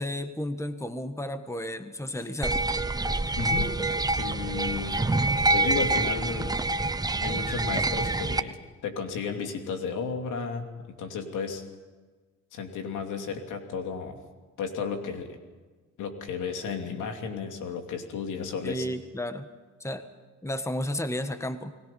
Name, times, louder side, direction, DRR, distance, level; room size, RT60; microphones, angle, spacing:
voice 1, 0.0-2.6 18.6-19.5 19.8-20.1 20.4-21.7, left 1 dB, 10° left, 9 dB, 1.6 m, -32 dB
sound 1, 2.4-8.4, right 2 dB, 15° right, 0.8 m, -26 dB
voice 2, 3.4-3.7 4.2-5.0 5.5-6.5 7.2-8.6 8.8-10.6 11.0-11.6 12.5-14.2 14.6-15.4 16.0-18.8, left 5 dB, 85° left, 4 dB, 3.0 m, -33 dB
29.5 x 19.5 x 5.5 m, 1.4 s
cardioid pair, 90°, 30 cm